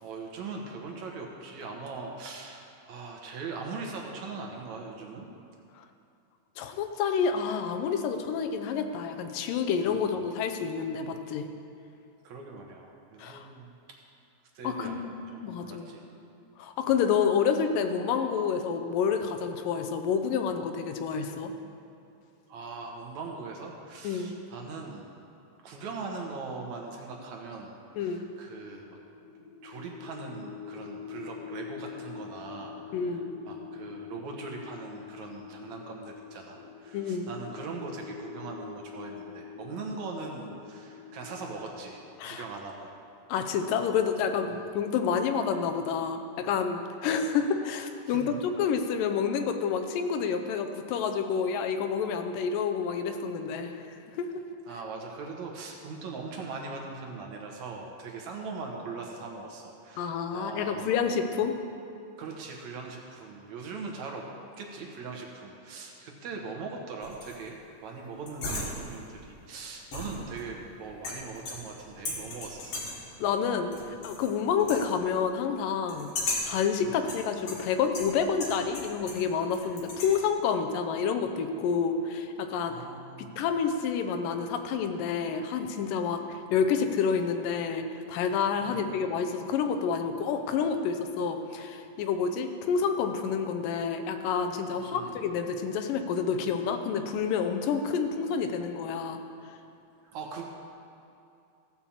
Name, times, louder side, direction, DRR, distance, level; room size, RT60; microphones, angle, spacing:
voice 1, 0.0-5.3 9.9-10.2 12.2-13.7 14.5-16.0 22.5-25.1 25.6-27.7 28.0-29.0 29.6-33.2 33.5-42.9 44.5-44.7 48.1-48.4 54.7-61.1 62.2-64.2 64.6-72.8 76.8-77.0 82.7-83.3 88.6-88.9 94.8-95.2 100.0-100.5, right 4 dB, 65° right, 1 dB, 2.3 m, -41 dB
voice 2, 6.6-11.5 13.2-13.5 14.6-15.9 16.6-21.5 24.0-24.3 28.0-28.2 32.9-33.3 36.9-37.3 42.2-42.4 43.3-54.3 60.0-61.5 73.2-73.7 74.0-76.1 76.5-82.8 83.2-99.2, left 6 dB, 90° left, 6 dB, 2.5 m, -29 dB
sound 1, 28.5-43.4, left 8 dB, 75° left, 2.6 m, -45 dB
sound 2, 67.0-67.5 68.3-69.1 69.9-70.6 71.0-71.8 72.1-73.1 73.7-74.3 74.6-74.9 75.9-76.6 77.1-79.3 79.5-80.2, left 2 dB, 50° left, 2.6 m, -36 dB
15.5 x 5.7 x 7.3 m, 2.7 s
omnidirectional pair, 3.8 m